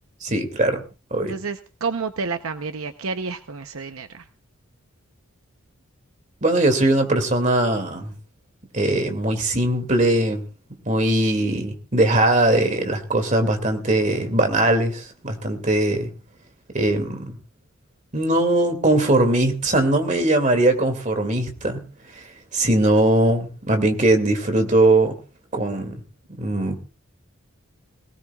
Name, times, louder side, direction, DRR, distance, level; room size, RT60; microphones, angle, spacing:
voice 1, 0.2-0.8 1.1-1.3 6.4-8.1 8.7-10.4 10.9-16.1 16.7-17.4 18.1-21.8 22.5-25.2 25.5-26.0 26.4-26.8, right 1 dB, 35° right, 2.3 m, -20 dB
voice 2, 1.2-4.2, right 4 dB, 70° right, 0.8 m, -30 dB
21.5 x 18.5 x 2.4 m
head